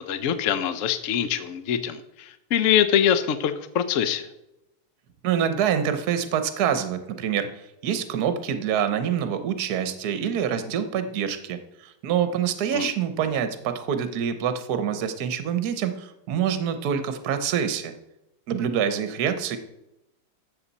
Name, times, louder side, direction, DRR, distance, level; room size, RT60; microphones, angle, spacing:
voice 1, 0.1-4.3 12.7-12.9, left 9 dB, 65° left, 11 dB, 0.7 m, -24 dB
voice 2, 5.2-17.9 18.5-19.6, right 8 dB, 55° right, 9 dB, 1.3 m, -26 dB
13.0 x 7.5 x 4.1 m, 0.88 s
omnidirectional pair, 2.3 m